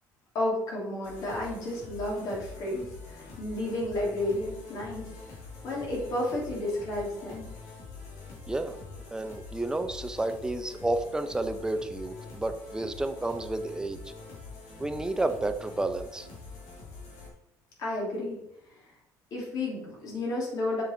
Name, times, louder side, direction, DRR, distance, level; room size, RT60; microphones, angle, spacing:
voice 1, 0.3-5.1 5.6-7.5 17.8-18.4 19.3-20.8, left 1 dB, 55° left, -3 dB, 3.3 m, -32 dB
sound 1, 1.0-17.3, left 4 dB, 80° left, 2.9 m, -45 dB
voice 2, 9.1-14.0 14.8-16.3, right 2 dB, 10° right, 8 dB, 0.7 m, -31 dB
7.2 x 5.4 x 4.4 m, 0.80 s
cardioid pair, 135°, 7 cm